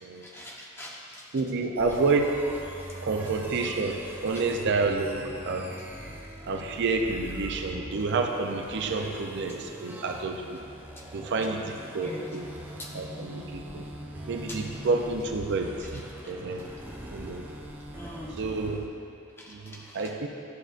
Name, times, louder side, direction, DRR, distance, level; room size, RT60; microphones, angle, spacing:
voice 1, 0.2-1.2 12.0-12.3 12.8-12.9 14.5-14.6 18.0-18.4 19.4-20.0, left 1 dB, 10° left, -3 dB, 0.9 m, -42 dB
voice 2, 1.3-2.3 3.0-4.0 4.2-5.8 6.5-10.6 11.1-12.5 12.9-13.8 14.3-16.0 16.3-16.6 17.1-17.5 18.4-18.9 19.5-20.3, right 3 dB, 60° right, 4 dB, 0.5 m, -29 dB
sound 1, 1.8-18.9, right 1 dB, 10° right, 0.6 m, -42 dB
11.5 x 6.4 x 2.4 m, 2.6 s
head